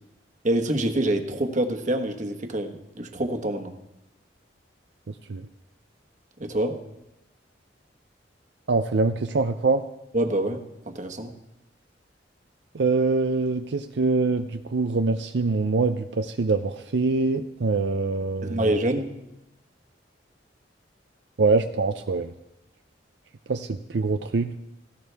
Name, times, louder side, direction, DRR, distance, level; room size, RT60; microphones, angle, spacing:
voice 1, 0.4-3.8 6.4-6.8 10.1-11.3 18.4-19.1, right 1 dB, 45° right, 5 dB, 1.3 m, -26 dB
voice 2, 5.1-5.5 8.7-9.8 12.7-18.7 21.4-22.3 23.5-24.6, right 3 dB, 70° right, 7 dB, 0.5 m, -24 dB
17.0 x 15.5 x 3.5 m, 0.89 s
head